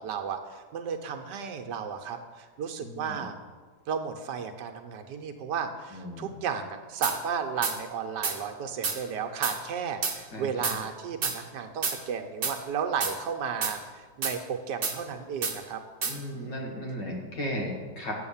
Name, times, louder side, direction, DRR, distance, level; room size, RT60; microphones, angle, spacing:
voice 1, 0.0-3.3 3.9-15.8 16.3-16.6, right 6 dB, 80° right, 5 dB, 1.4 m, -34 dB
voice 2, 2.8-3.2 5.9-6.3 10.3-10.8 16.0-18.1, equal, 75° left, -1 dB, 2.6 m, -36 dB
sound 1, 7.0-7.2 7.6-7.8 8.2-8.4 8.8-9.0 9.4-9.6 10.0-10.2 10.6-10.8 11.2-11.4 11.8-12.0 12.4-12.6 13.0-13.1 13.6-13.7 14.2-14.4 14.8-15.0 15.4-15.6 16.0-16.1, right 4 dB, 40° right, 1.0 m, -29 dB
8.2 x 7.2 x 7.1 m, 1.4 s
omnidirectional pair, 1.9 m